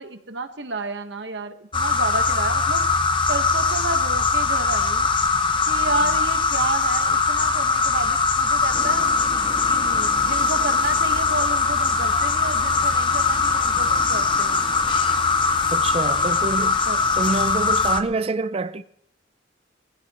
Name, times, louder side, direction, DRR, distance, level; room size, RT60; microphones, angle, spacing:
voice 1, 0.0-2.9 3.3-5.1 5.7-9.1 9.7-14.6 16.2-16.4 16.9-17.0, right 3 dB, 70° right, 1.3 m, -31 dB
sound 1, 1.7-18.0, left 4 dB, 25° left, 0.8 m, -21 dB
sound 2, 8.7-17.4, equal, ahead, 2.6 m, -41 dB
voice 2, 15.7-16.8 17.1-18.8, right 3 dB, 35° right, 0.5 m, -26 dB
20.5 x 15.5 x 3.0 m
head